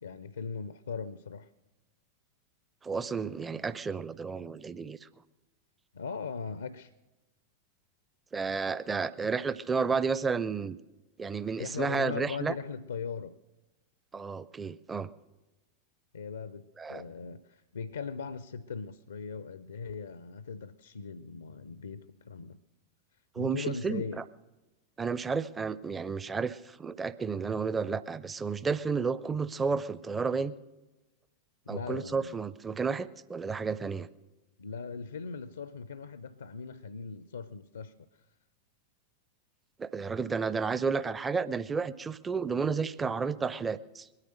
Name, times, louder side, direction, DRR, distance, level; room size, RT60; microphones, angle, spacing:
voice 1, 0.0-1.5 5.9-6.9 11.6-13.4 16.1-22.6 23.4-24.2 31.7-32.4 34.6-38.1, left 5 dB, 70° left, 0.5 m, -39 dB
voice 2, 2.8-5.1 8.3-10.8 11.2-12.5 14.1-15.1 16.8-17.0 23.4-24.0 25.0-30.5 31.7-34.1 39.8-44.1, right 5 dB, 15° right, 0.5 m, -32 dB
22.0 x 9.8 x 6.5 m
figure-of-eight pair, 90°, 0 cm